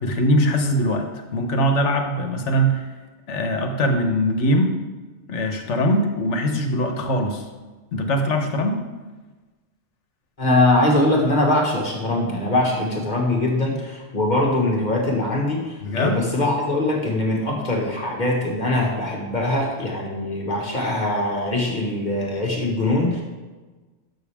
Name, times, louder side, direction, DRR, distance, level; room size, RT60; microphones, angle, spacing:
voice 1, 0.0-2.8 3.3-4.7 5.3-7.4 7.9-8.8 15.8-16.2, equal, 75° left, 4 dB, 1.3 m, -21 dB
voice 2, 10.4-23.2, left 1 dB, 40° left, -1 dB, 1.6 m, -22 dB
12.0 x 6.2 x 3.5 m, 1.3 s
omnidirectional pair, 1.2 m